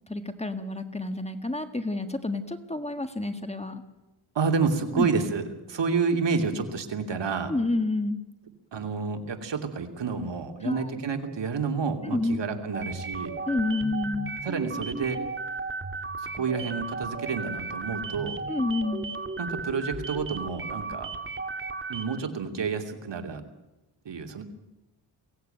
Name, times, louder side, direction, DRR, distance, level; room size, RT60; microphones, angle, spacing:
voice 1, 0.1-3.8 4.9-5.1 7.5-8.2 10.6-10.9 12.0-12.4 13.5-14.3 18.5-19.1, left 2 dB, 15° left, 8 dB, 1.7 m, -29 dB
voice 2, 4.3-7.5 8.7-13.3 14.4-15.2 16.2-18.4 19.4-21.1 21.9-23.4 24.0-24.4, right 5 dB, 60° right, 5 dB, 2.9 m, -29 dB
sound 1, 12.7-22.3, right 3 dB, 25° right, 2.1 m, -35 dB
23.0 x 17.0 x 9.2 m, 0.99 s
cardioid pair, 80°, 48 cm